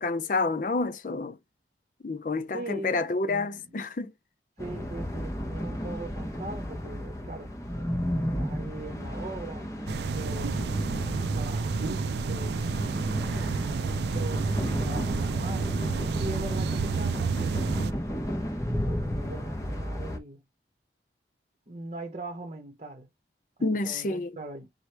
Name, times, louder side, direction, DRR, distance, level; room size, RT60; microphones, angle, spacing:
voice 1, 0.0-1.4 2.0-4.1 23.6-24.3, left 3 dB, 45° left, 0.5 m, -29 dB
voice 2, 2.5-3.7 4.6-7.5 8.4-10.7 11.3-12.6 13.8-17.8 18.8-20.4 21.7-23.1 23.6-24.7, right 2 dB, 40° right, 0.8 m, -41 dB
sound 1, 4.6-20.2, equal, 20° left, 0.9 m, -33 dB
sound 2, 9.9-17.9, right 4 dB, 70° right, 0.4 m, -30 dB
4.7 x 2.1 x 4.5 m
head